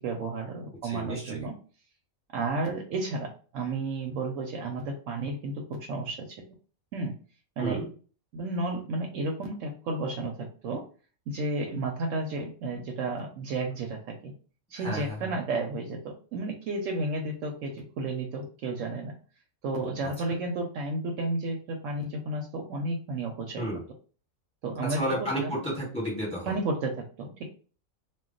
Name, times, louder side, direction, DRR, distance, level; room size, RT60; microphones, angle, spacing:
voice 1, 0.0-1.5 2.3-6.3 6.9-7.1 7.6-7.8 8.3-10.8 11.3-14.3 14.7-16.0 16.3-19.1 19.6-23.7 24.6-25.6 26.5-27.4, right 2 dB, 70° right, 2 dB, 0.9 m, -32 dB
voice 2, 0.8-1.5 7.6-7.9 14.7-15.2 20.0-20.4 23.6-23.8 24.8-26.5, equal, 5° left, -3 dB, 1.0 m, -32 dB
2.2 x 2.2 x 3.7 m, 0.39 s
omnidirectional pair, 1.5 m